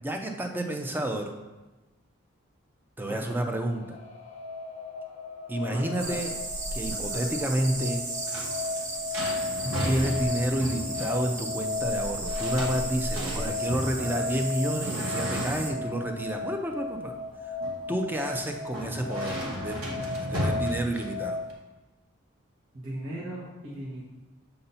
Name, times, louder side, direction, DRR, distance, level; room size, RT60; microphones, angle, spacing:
voice 1, 0.0-1.3 3.0-4.0 5.5-6.3 6.7-8.0 9.8-17.1 17.5-17.6 17.9-19.8 20.2-21.4, right 1 dB, 10° right, 3 dB, 0.4 m, -30 dB
sound 1, 3.4-21.5, left 3 dB, 35° left, 0.6 m, -35 dB
voice 2, 5.7-6.2 6.9-7.3 9.9-10.2 13.1-13.5 14.0-14.3 22.7-24.0, right 1 dB, 65° right, -6 dB, 1.1 m, -39 dB
sound 2, 6.0-15.7, right 2 dB, 35° right, 0.7 m, -35 dB
sound 3, 8.0-21.5, equal, 85° right, 1.2 m, -36 dB
6.7 x 2.7 x 5.5 m, 1.1 s
head